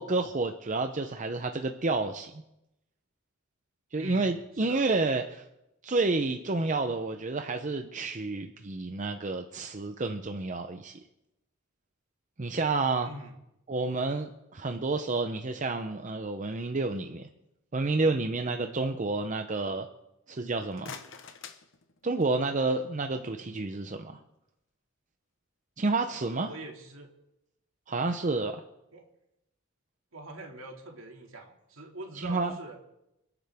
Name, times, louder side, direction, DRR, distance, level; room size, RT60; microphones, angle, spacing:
voice 1, 0.0-2.4 3.9-5.4 5.8-11.0 12.4-13.1 13.7-17.3 17.7-19.9 20.3-20.9 22.0-24.2 25.8-26.5 27.9-28.6 32.1-32.6, right 3 dB, 35° right, 6 dB, 0.7 m, -30 dB
voice 2, 4.0-4.3 4.6-4.8 13.0-13.3 26.3-27.1 28.9-29.0 30.1-32.8, right 2 dB, 70° right, 2 dB, 2.4 m, -44 dB
sound 1, 20.5-22.5, left 6 dB, 65° left, 1.1 m, -47 dB
28.5 x 9.9 x 3.6 m, 0.87 s
head